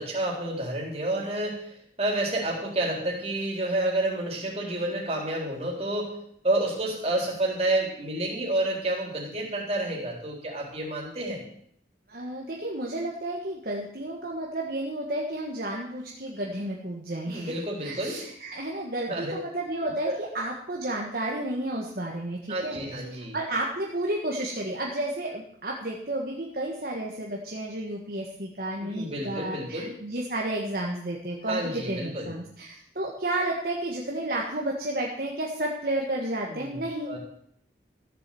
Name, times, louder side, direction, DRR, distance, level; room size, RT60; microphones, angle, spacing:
voice 1, 0.0-6.2 6.4-11.4 17.2-18.2 19.1-19.3 20.1-20.2 22.5-23.4 28.8-29.9 31.5-32.3 36.5-37.2, right 1 dB, 35° right, -1 dB, 4.0 m, -29 dB
voice 2, 12.1-17.5 17.8-22.8 23.1-37.2, right 1 dB, 55° right, -1 dB, 1.7 m, -32 dB
15.0 x 7.4 x 7.8 m, 0.67 s
head